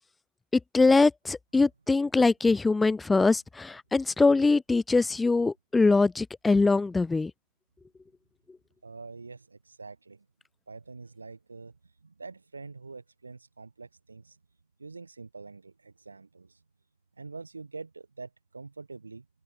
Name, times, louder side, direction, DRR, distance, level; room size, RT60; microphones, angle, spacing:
voice 1, 0.5-7.3, left 3 dB, 10° left, 1.3 m, -23 dB
voice 2, 8.8-10.3 10.7-14.4 14.8-16.6 17.2-19.3, right 4 dB, 80° right, 3.0 m, -45 dB
figure-of-eight pair, 90°, 0 cm